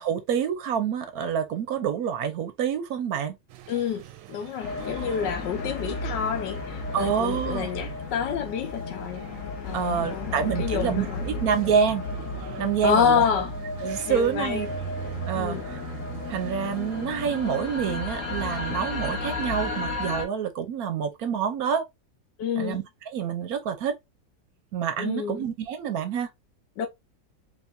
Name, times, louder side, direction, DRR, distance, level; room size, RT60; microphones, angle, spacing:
voice 1, 0.0-3.4 6.9-7.7 9.7-12.0 12.6-13.2 13.8-14.7 15.3-15.8 16.3-21.8 22.6-22.8 23.1-23.9 24.7-26.3, right 7 dB, 65° right, 1.0 m, -27 dB
sound 1, 3.5-19.9, right 13 dB, 90° right, 1.3 m, -43 dB
voice 2, 3.7-4.0 4.3-9.3 9.6-11.4 12.8-13.5 14.1-14.7 15.3-15.6 22.4-22.8 25.0-25.4 26.8-26.9, left 8 dB, 75° left, 1.3 m, -28 dB
sound 2, 4.6-20.2, left 3 dB, 50° left, 1.2 m, -33 dB
5.0 x 2.8 x 2.6 m
omnidirectional pair, 2.0 m